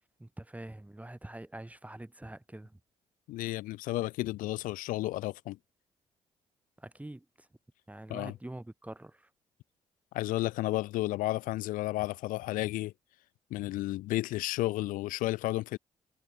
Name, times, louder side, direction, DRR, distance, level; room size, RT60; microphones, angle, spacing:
voice 1, 0.2-2.8 6.8-7.5 7.9-9.3, right 1 dB, 10° right, 3.0 m, -45 dB
voice 2, 3.3-5.6 8.1-8.3 10.1-12.9 13.5-15.8, left 17 dB, 80° left, 0.8 m, -32 dB
supercardioid pair, 60°, 14 cm